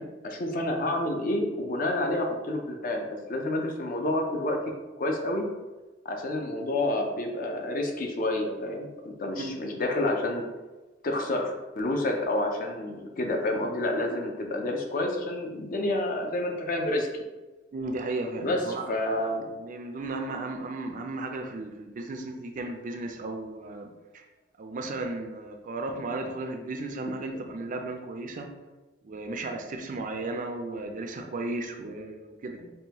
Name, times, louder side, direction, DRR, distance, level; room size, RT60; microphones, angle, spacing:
voice 1, 0.0-4.6 5.0-5.5 6.0-10.4 11.0-17.2 18.4-19.5, left 1 dB, 45° left, 2 dB, 0.5 m, -29 dB
voice 2, 17.7-18.9 19.6-24.2 24.6-28.5 29.0-32.7, right 2 dB, 45° right, 4 dB, 0.4 m, -35 dB
5.3 x 2.2 x 2.9 m, 1.2 s
head